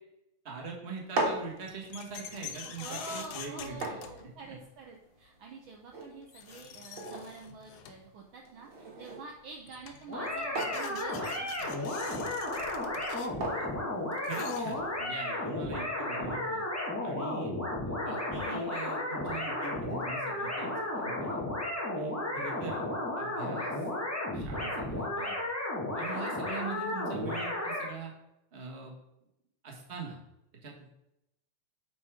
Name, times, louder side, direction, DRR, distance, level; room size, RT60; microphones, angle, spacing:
voice 1, 0.4-4.0 4.5-4.6 13.4-13.7 14.2-16.6 17.0-17.5 17.9-21.4 22.0-22.8 23.2-23.8 24.3-25.4 25.9-28.1 28.5-28.9 29.6-30.2 30.6-30.9, right 4 dB, 30° right, 0 dB, 1.2 m, -42 dB
sound 1, 0.9-14.8, right 2 dB, 50° right, 2.0 m, -41 dB
sound 2, 1.5-4.6 5.9-6.0 6.3-8.1 9.3-9.4 9.7-15.1, left 8 dB, 85° left, 2.2 m, -46 dB
voice 2, 2.6-11.9, right 4 dB, 80° right, 1 dB, 1.1 m, -47 dB
sound 3, 10.1-27.9, left 1 dB, 25° left, 0.3 m, -34 dB
8.3 x 4.7 x 4.9 m, 0.85 s
omnidirectional pair, 3.3 m